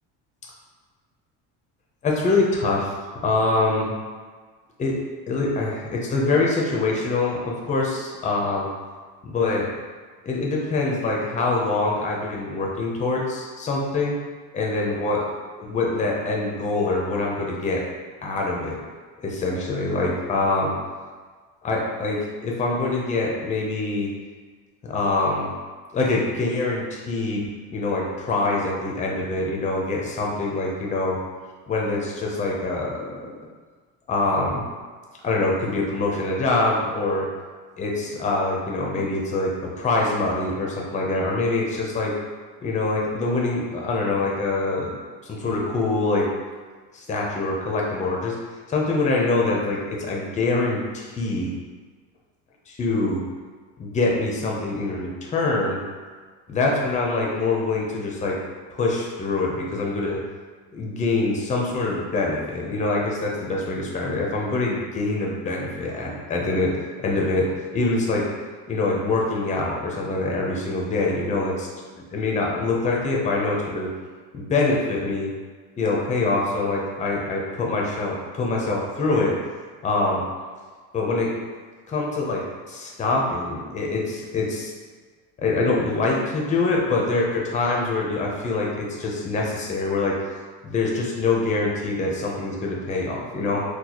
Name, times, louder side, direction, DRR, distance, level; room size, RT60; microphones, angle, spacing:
voice 1, 2.0-2.9 3.2-4.0 4.8-5.0 5.3-8.7 9.2-9.7 10.2-14.1 14.5-15.2 15.6-17.8 18.2-18.8 19.2-20.7 21.6-24.1 24.9-25.5 25.9-27.4 27.7-31.2 31.7-33.3 34.1-34.6 35.2-37.3 37.8-42.1 42.6-44.9 45.2-46.3 46.9-48.3 48.7-51.5 52.8-53.2 53.8-55.8 56.5-58.4 58.7-60.2 60.7-67.5 67.7-68.3 68.7-71.7 72.1-73.9 74.3-75.3 75.8-79.4 79.8-80.2 80.9-81.3 81.9-82.4 82.7-84.7 85.4-90.1 90.6-93.6, left 3 dB, 20° left, -2 dB, 0.5 m, -24 dB
3.9 x 2.3 x 2.9 m, 1.5 s
cardioid pair, 140°, 34 cm